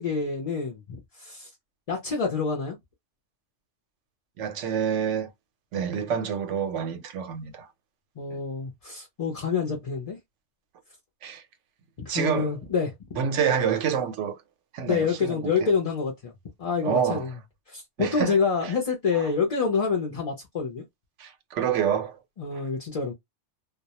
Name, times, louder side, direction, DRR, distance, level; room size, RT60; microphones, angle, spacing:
voice 1, 0.0-1.5 1.9-2.8 8.2-10.2 12.0-12.9 14.9-16.3 16.6-17.3 17.7-20.8 22.4-23.1, left 5 dB, 45° left, 0.5 m, -27 dB
voice 2, 4.4-5.3 5.7-7.7 11.2-11.4 12.1-12.6 13.2-14.4 14.7-15.5 16.8-17.2 18.0-18.7 21.2-22.2, right 7 dB, 85° right, 0.9 m, -27 dB
2.2 x 2.0 x 2.8 m
omnidirectional pair, 1.2 m